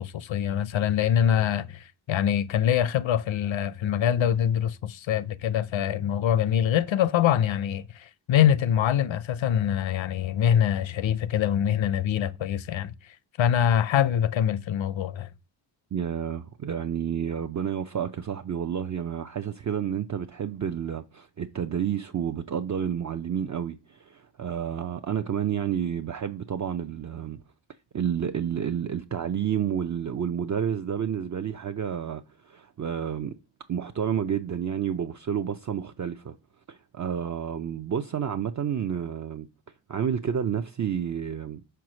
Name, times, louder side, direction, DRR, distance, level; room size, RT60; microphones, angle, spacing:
voice 1, 0.0-12.9 13.4-15.3, left 9 dB, 75° left, 0.6 m, -24 dB
voice 2, 15.9-27.4 27.9-33.3 33.7-36.3 36.7-39.5 39.9-41.6, right 8 dB, 40° right, 0.5 m, -30 dB
5.6 x 4.6 x 6.1 m
wide cardioid pair, 120°, 47 cm